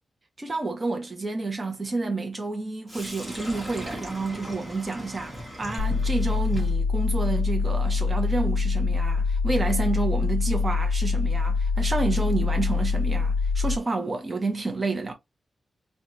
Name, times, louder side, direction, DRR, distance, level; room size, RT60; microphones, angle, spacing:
voice 1, 0.4-15.1, right 3 dB, 25° right, 0.6 m, -29 dB
Sink (filling or washing), 2.9-10.8, equal, 5° right, 1.4 m, -42 dB
sound 1, 5.8-13.8, left 4 dB, 85° left, 0.5 m, -24 dB
3.7 x 2.2 x 2.9 m
wide cardioid pair, 155°, 0 cm